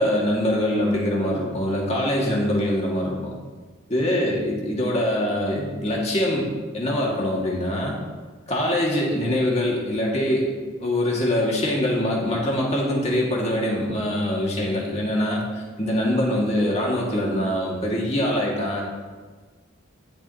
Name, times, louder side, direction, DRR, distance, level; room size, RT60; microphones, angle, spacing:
voice 1, 0.0-3.3 3.9-7.9 8.5-10.5 10.8-18.8, left 1 dB, 30° left, -3 dB, 2.0 m, -23 dB
15.5 x 7.3 x 2.9 m, 1.4 s
head